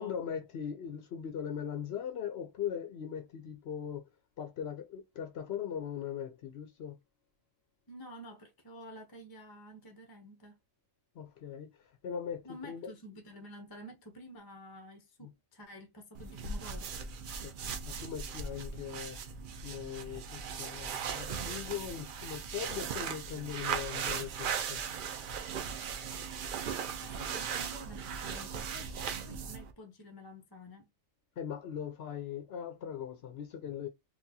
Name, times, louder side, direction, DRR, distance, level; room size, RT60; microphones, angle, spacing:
voice 1, 0.0-4.1 4.4-7.0 11.1-12.9 15.2-15.3 17.4-19.2 19.6-24.8 31.4-33.9, left 8 dB, 65° left, 0.7 m, -40 dB
voice 2, 7.9-10.6 12.4-16.9 27.0-30.9, equal, 30° left, 0.4 m, -50 dB
sound 1, 16.1-29.7, right 6 dB, 70° right, 0.5 m, -38 dB
4.1 x 2.3 x 2.7 m
omnidirectional pair, 1.4 m